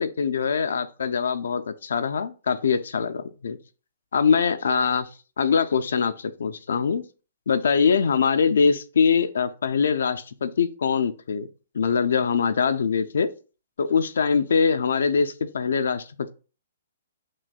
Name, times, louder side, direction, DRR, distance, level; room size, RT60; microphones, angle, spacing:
voice 1, 0.0-3.6 4.1-5.1 5.4-7.0 7.5-11.5 11.7-13.3 13.8-16.1, left 6 dB, 80° left, 0.4 m, -23 dB
6.1 x 2.2 x 2.4 m
hypercardioid pair, 165°, 0 cm